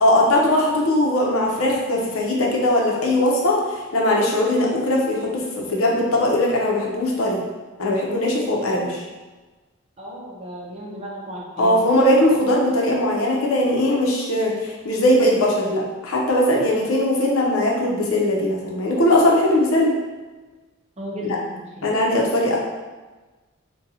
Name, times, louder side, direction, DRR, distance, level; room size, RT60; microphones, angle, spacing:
voice 1, 0.0-7.4 7.8-9.0 11.6-19.9 21.8-22.6, left 1 dB, 85° left, -2 dB, 0.7 m, -20 dB
voice 2, 10.0-11.8 21.0-21.9, equal, 30° right, -3 dB, 0.6 m, -34 dB
3.9 x 2.2 x 2.7 m, 1.3 s
head